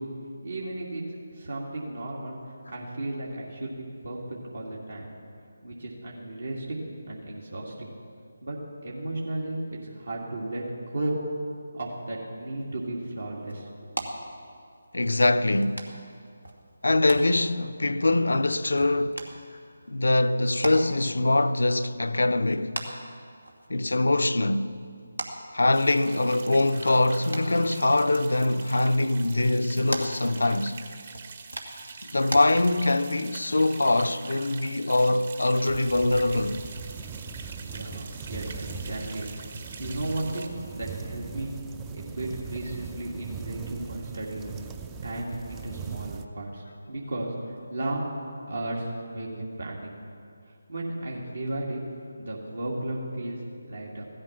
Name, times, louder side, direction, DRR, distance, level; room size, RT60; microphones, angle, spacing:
voice 1, 0.4-1.0 1.3-2.4 2.7-5.1 5.6-6.8 7.1-7.9 8.4-8.6 8.8-11.2 11.7-13.7 37.6-39.3 39.8-44.7 45.0-48.1 48.5-49.9 50.5-51.8 52.2-54.0, right 1 dB, 70° right, 2.6 m, -34 dB
sound 1, 12.6-32.4, right 1 dB, 90° right, 2.2 m, -42 dB
voice 2, 14.9-15.9 16.8-19.2 19.9-22.8 23.7-24.8 25.5-30.8 32.1-36.6, left 2 dB, 70° left, 0.7 m, -23 dB
sound 2, 25.7-40.5, right 5 dB, 45° right, 1.5 m, -44 dB
sound 3, 35.7-46.3, right 5 dB, 15° right, 0.6 m, -39 dB
16.5 x 13.0 x 6.0 m
figure-of-eight pair, 155°, 0 cm